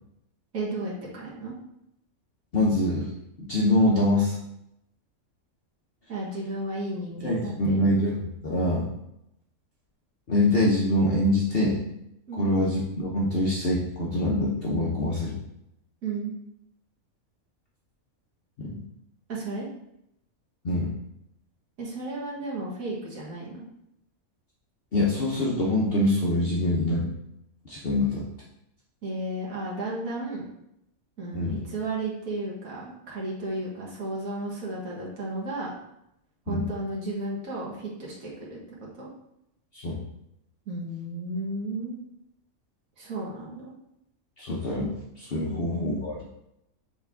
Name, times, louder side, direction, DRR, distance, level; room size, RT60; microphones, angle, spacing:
voice 1, 0.5-1.5 6.1-7.8 12.3-12.5 16.0-16.3 19.3-19.7 21.8-23.6 29.0-30.5 31.2-35.7 36.5-38.6 39.0-39.1 40.7-41.9 43.0-43.7 45.5-46.0, right 2 dB, 70° right, -5 dB, 2.0 m, -33 dB
voice 2, 2.5-3.1 3.4-4.4 7.2-8.9 10.3-11.8 12.4-15.4 18.6-18.8 20.6-20.9 24.9-27.1 27.7-28.2 31.3-31.6 36.5-36.6 39.7-40.0 44.4-46.2, left 1 dB, 45° left, -5 dB, 1.0 m, -24 dB
7.2 x 3.5 x 3.7 m, 0.80 s
omnidirectional pair, 1.5 m